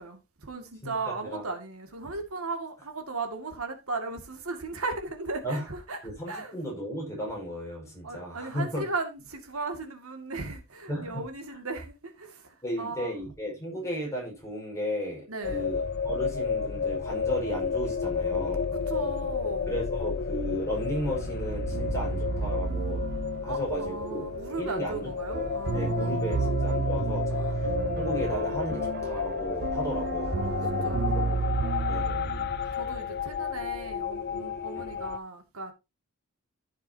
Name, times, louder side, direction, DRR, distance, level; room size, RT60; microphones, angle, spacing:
voice 1, 0.0-6.0 6.3-6.5 8.0-13.1 15.3-15.7 18.7-19.8 23.5-26.5 27.3-27.5 30.0-30.1 30.3-31.4 31.7-32.0 32.7-35.7, right 3 dB, 75° right, 2.3 m, -37 dB
voice 2, 0.8-1.4 5.4-5.7 6.0-8.8 10.9-11.2 12.6-18.7 19.7-23.0 23.4-24.3 24.6-27.7 28.0-30.4 30.6-32.3 34.8-34.9, equal, 15° left, 5.3 m, -35 dB
sound 1, 15.4-35.2, left 6 dB, 50° left, 0.6 m, -32 dB
sound 2, 20.9-33.0, right 4 dB, 45° right, 0.5 m, -32 dB
14.5 x 6.7 x 2.8 m
head